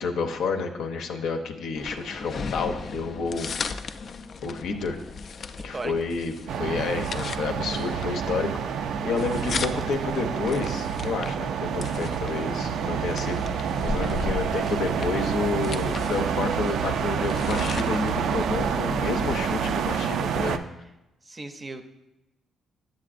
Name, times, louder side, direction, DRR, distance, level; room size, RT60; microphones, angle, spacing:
voice 1, 0.0-3.5 4.4-5.0 5.6-6.3 6.6-20.6, left 4 dB, 80° left, 5 dB, 0.7 m, -30 dB
sound 1, 1.8-19.6, left 4 dB, 50° left, 0.3 m, -37 dB
sound 2, 6.5-20.6, right 7 dB, 75° right, 0.3 m, -28 dB
voice 2, 21.2-21.8, right 2 dB, 25° right, 7 dB, 0.6 m, -35 dB
7.5 x 7.5 x 2.5 m, 0.96 s
cardioid pair, 90°, 0 cm